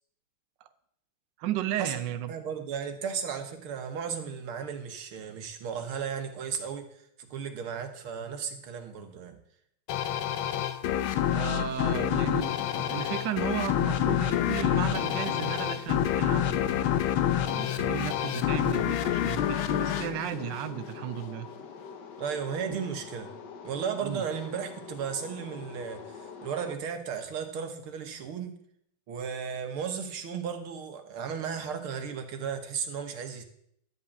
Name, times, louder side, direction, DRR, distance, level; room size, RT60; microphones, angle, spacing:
voice 1, 1.4-2.3 11.3-16.6 17.4-21.5 22.7-22.8 24.0-24.2, right 11 dB, 65° right, 9 dB, 1.4 m, -34 dB
voice 2, 2.3-6.9 7.3-9.4 22.2-23.3 23.6-28.5 29.1-33.4, right 7 dB, 85° right, 6 dB, 2.2 m, -35 dB
sound 1, 9.9-21.1, left 11 dB, 80° left, 1.6 m, -28 dB
sound 2, 18.6-26.7, left 6 dB, 60° left, 1.7 m, -45 dB
12.0 x 5.5 x 8.4 m, 0.71 s
omnidirectional pair, 2.3 m